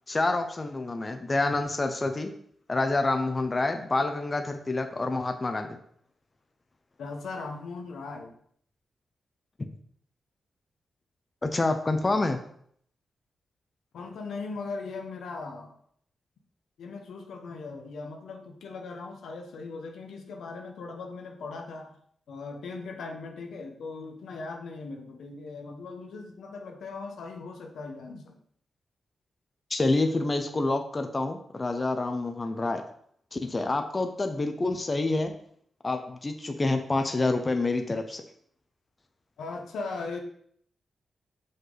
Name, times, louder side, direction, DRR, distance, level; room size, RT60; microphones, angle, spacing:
voice 1, 0.1-2.3 2.7-5.8 11.4-12.4 29.7-32.8 33.3-35.3 35.8-38.2, left 2 dB, 30° left, 6 dB, 0.8 m, -27 dB
voice 2, 7.0-8.3 13.9-15.8 16.8-21.9 22.3-28.4 39.4-40.2, left 4 dB, 85° left, 2 dB, 1.2 m, -39 dB
6.0 x 5.4 x 4.0 m, 0.64 s
cardioid pair, 70°, 0 cm